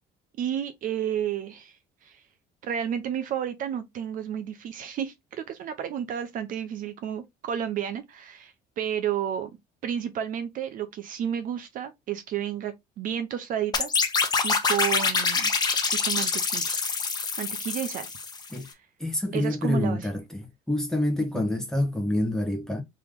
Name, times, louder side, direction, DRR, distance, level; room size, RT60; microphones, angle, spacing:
voice 1, 0.4-1.8 2.0-2.2 2.6-5.1 5.5-9.5 9.8-13.9 14.4-15.5 16.0-16.8 17.4-18.1 18.7-18.8 19.3-20.1 21.3-21.4, right 9 dB, 50° right, 0.6 m, -31 dB
sound 1, 13.7-18.5, left 4 dB, 25° left, 0.7 m, -26 dB
voice 2, 19.0-22.8, left 1 dB, 5° left, 1.0 m, -27 dB
3.4 x 2.9 x 3.5 m
cardioid pair, 140°, 17 cm